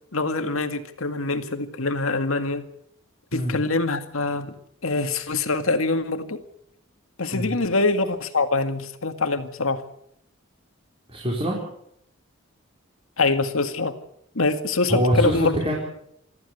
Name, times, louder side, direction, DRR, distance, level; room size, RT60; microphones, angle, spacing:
voice 1, 0.1-2.6 3.3-4.5 4.8-6.4 7.2-9.8 13.2-13.9 14.4-15.6, left 3 dB, 80° left, 8 dB, 2.0 m, -24 dB
voice 2, 11.1-11.6 14.9-15.8, equal, 25° right, -3 dB, 4.8 m, -24 dB
25.0 x 14.5 x 8.1 m, 0.74 s
head